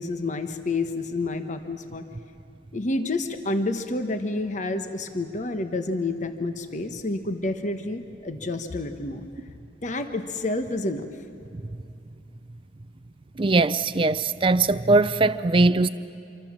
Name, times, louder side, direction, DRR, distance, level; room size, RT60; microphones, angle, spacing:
voice 1, 0.0-2.1 2.7-9.3 9.8-11.1, left 2 dB, 45° left, 1.1 m, -29 dB
voice 2, 13.4-15.9, right 3 dB, 30° right, 0.5 m, -20 dB
26.5 x 24.0 x 7.4 m
head